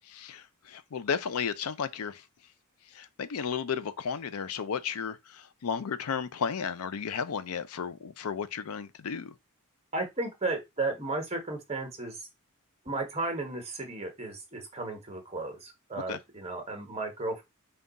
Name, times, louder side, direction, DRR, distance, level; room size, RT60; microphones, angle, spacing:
voice 1, 0.0-2.3 2.9-9.3 16.1-16.2, left 6 dB, 75° left, 0.5 m, -34 dB
voice 2, 9.9-12.2 12.8-17.4, right 2 dB, 30° right, 1.1 m, -34 dB
3.7 x 2.3 x 3.9 m
head